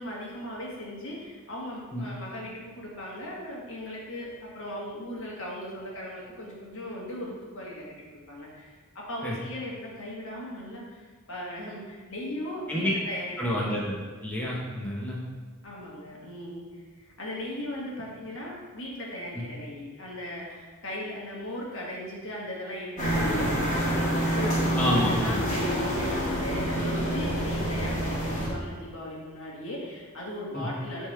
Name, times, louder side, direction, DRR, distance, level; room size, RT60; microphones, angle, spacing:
voice 1, 0.0-7.8 8.1-8.8 9.1-13.6 15.6-31.1, left 1 dB, 65° left, -4 dB, 1.5 m, -38 dB
voice 2, 13.4-15.2 19.4-19.5 24.7-25.4 30.5-30.7, left 1 dB, 5° left, -5 dB, 0.8 m, -28 dB
sound 1, 23.0-28.5, equal, 35° left, 2.0 m, -27 dB
10.5 x 3.6 x 3.3 m, 1.4 s
head